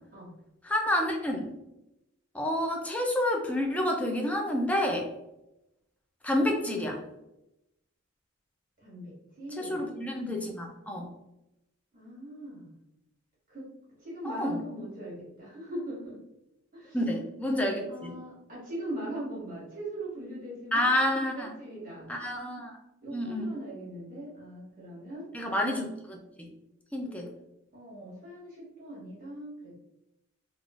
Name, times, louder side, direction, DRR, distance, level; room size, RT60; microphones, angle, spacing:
voice 1, 0.6-1.5 2.3-5.1 6.2-7.0 9.6-11.1 14.2-14.6 16.9-18.2 20.7-21.5 22.1-22.8 23.1-23.5 25.3-26.5 26.9-27.3, left 1 dB, 5° left, 1 dB, 0.4 m, -29 dB
voice 2, 8.8-9.8 11.9-12.7 13.5-13.7 14.0-16.2 16.7-17.0 17.9-20.9 21.2-22.1 23.0-25.3 27.0-27.2 27.7-29.8, right 1 dB, 40° right, -6 dB, 1.4 m, -40 dB
3.6 x 2.4 x 2.4 m, 0.90 s
head